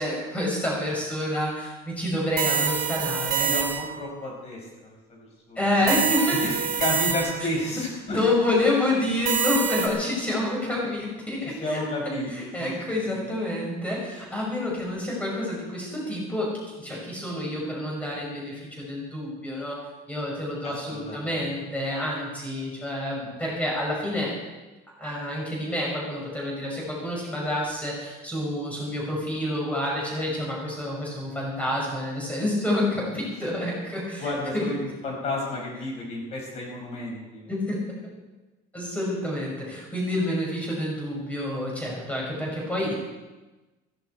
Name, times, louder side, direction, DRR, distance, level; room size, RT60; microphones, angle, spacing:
voice 1, 0.0-3.5 5.6-6.4 8.1-11.8 12.3-16.5 16.8-19.8 20.1-24.3 25.0-34.7 37.5-37.8 38.7-42.9, left 1 dB, 5° left, -3 dB, 5.8 m, -28 dB
sound 1, 2.4-4.0 5.9-7.5 9.2-9.9, right 7 dB, 55° right, 3.0 m, -26 dB
voice 2, 3.4-6.0 6.4-6.5 6.8-8.2 11.4-13.2 20.9-21.4 34.2-37.5, left 1 dB, 35° left, -1 dB, 6.1 m, -32 dB
16.0 x 16.0 x 4.7 m, 1.1 s
cardioid pair, 175°, 19 cm